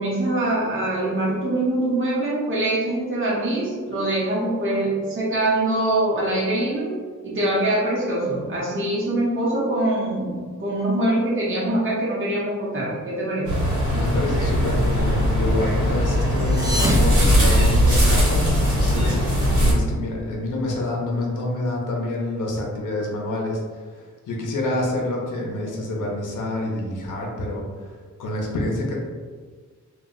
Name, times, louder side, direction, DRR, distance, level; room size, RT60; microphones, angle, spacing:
voice 1, 0.0-13.5, right 1 dB, 40° right, -6 dB, 0.9 m, -23 dB
sound 1, 13.5-19.7, equal, 75° right, 1.0 m, -20 dB
voice 2, 13.9-29.0, left 1 dB, 90° left, -1 dB, 0.6 m, -27 dB
sound 2, 16.4-18.2, right 1 dB, 10° right, 0.3 m, -27 dB
2.3 x 2.1 x 3.6 m, 1.5 s
wide cardioid pair, 145°, 30 cm